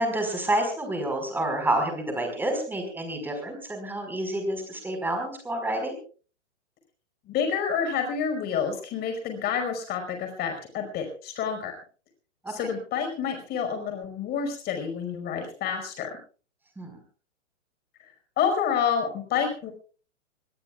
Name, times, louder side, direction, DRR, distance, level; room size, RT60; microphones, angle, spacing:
voice 1, 0.0-6.0 12.4-12.5 16.8-17.0, right 1 dB, 5° right, 4 dB, 5.0 m, -28 dB
voice 2, 7.2-11.7 12.5-16.1 18.4-19.7, left 7 dB, 25° left, 5 dB, 5.1 m, -28 dB
25.0 x 19.5 x 2.4 m, 0.39 s
hypercardioid pair, 140°, 37 cm